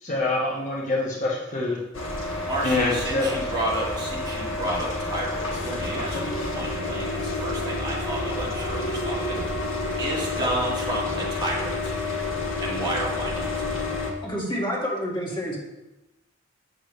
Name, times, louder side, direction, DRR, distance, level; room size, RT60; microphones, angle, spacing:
voice 1, 0.0-1.8 2.6-3.4, left 2 dB, 40° left, -3 dB, 1.0 m, -25 dB
sound 1, 1.9-14.1, left 2 dB, 70° left, 1.3 m, -29 dB
voice 2, 2.5-9.4 10.0-12.0 12.6-13.5, right 1 dB, 20° right, -4 dB, 1.7 m, -31 dB
voice 3, 14.2-15.6, equal, 25° left, -4 dB, 1.8 m, -28 dB
8.1 x 6.5 x 3.1 m, 1.0 s
head